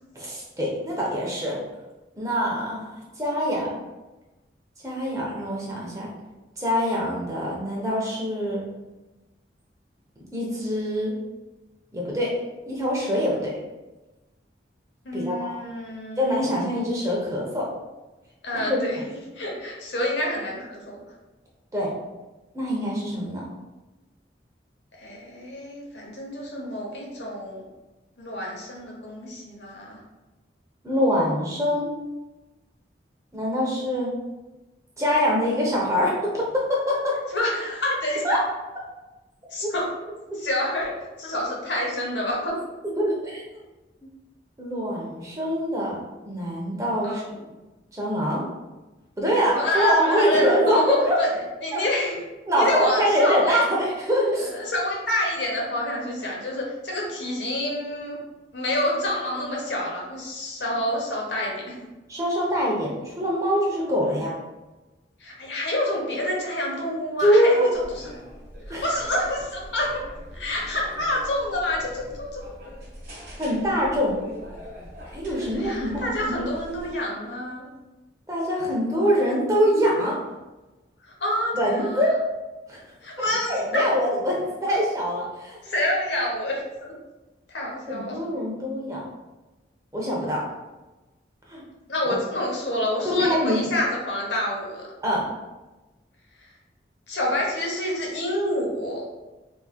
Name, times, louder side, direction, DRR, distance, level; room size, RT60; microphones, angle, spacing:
voice 1, 0.1-1.6 2.2-3.7 4.8-6.1 6.6-8.6 10.3-11.1 11.9-12.3 12.7-13.5 15.1-15.6 16.2-17.7 18.5-18.8 21.7-21.9 22.5-23.4 30.8-31.9 33.3-34.1 35.0-37.2 38.2-38.4 39.6-39.7 43.0-43.6 44.6-46.0 46.2-47.2 47.9-48.4 49.2-51.2 51.7-51.8 52.5-54.5 62.1-64.3 67.2-67.7 68.7-68.8 73.4-74.2 75.1-76.3 78.3-80.2 81.5-82.1 82.7-82.8 83.5-85.6 87.9-89.0 89.9-90.4 91.5-91.6 92.1-92.2 93.0-93.6 95.0-95.3, equal, 20° right, -3 dB, 0.7 m, -24 dB
voice 2, 15.0-16.4 18.4-19.0 19.4-21.0 24.9-27.6 28.2-30.0 37.3-38.4 39.5-39.9 40.4-40.9 41.2-42.5 47.0-47.4 49.5-51.3 51.6-52.2 52.6-53.7 54.5-58.2 58.5-61.8 64.0-64.2 65.2-67.7 68.8-70.0 70.3-72.4 75.5-77.6 81.0-82.0 83.0-83.8 85.6-86.6 87.5-88.3 91.9-94.9 97.1-99.1, left 1 dB, 85° left, -2 dB, 0.9 m, -28 dB
sound 1, 67.7-76.9, equal, 55° right, 1.4 m, -42 dB
3.6 x 3.0 x 2.3 m, 1.1 s
head